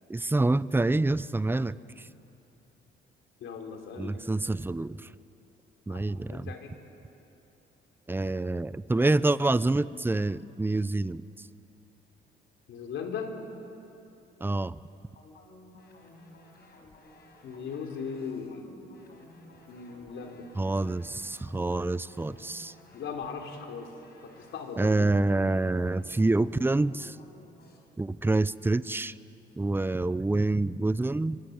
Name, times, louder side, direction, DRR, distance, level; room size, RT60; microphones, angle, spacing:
voice 1, 0.1-2.1 4.0-5.1 5.9-6.5 8.1-11.2 14.4-14.8 20.6-22.7 24.8-27.2 28.0-29.1 29.6-31.4, right 2 dB, 10° right, 17 dB, 0.6 m, -27 dB
voice 2, 3.4-4.2 5.9-6.7 12.7-13.3 17.4-18.8 19.7-20.5 22.9-23.9 24.2-25.1, left 6 dB, 80° left, 2 dB, 3.8 m, -38 dB
sound 1, 15.2-27.8, left 2 dB, 55° left, 5.7 m, -54 dB
25.0 x 24.0 x 8.8 m, 2.9 s
cardioid pair, 90°, 20 cm